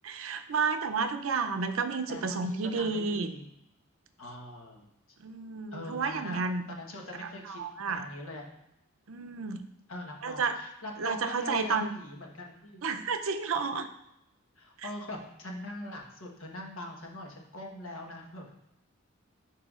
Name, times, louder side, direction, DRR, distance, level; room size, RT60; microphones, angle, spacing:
voice 1, 0.0-3.3 5.2-6.7 7.2-8.0 9.1-9.6 10.2-10.6 11.0-11.9 12.8-13.9 14.8-14.9, right 4 dB, 80° right, 8 dB, 0.5 m, -31 dB
voice 2, 2.1-3.4 4.2-4.9 5.7-7.6 7.9-8.4 9.9-12.8 14.6-18.5, left 1 dB, 80° left, 0 dB, 1.2 m, -42 dB
10.0 x 4.8 x 2.4 m, 0.86 s
head